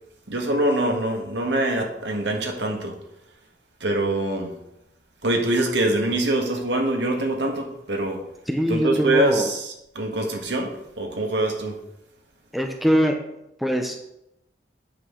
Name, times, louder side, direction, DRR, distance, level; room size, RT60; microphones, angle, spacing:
voice 1, 0.3-3.0 3.8-4.5 5.2-8.2 8.7-11.8, right 1 dB, 80° right, 2 dB, 1.6 m, -24 dB
voice 2, 8.5-9.5 12.5-13.1 13.6-14.1, equal, ahead, 3 dB, 0.7 m, -22 dB
8.8 x 6.4 x 3.8 m, 0.84 s
head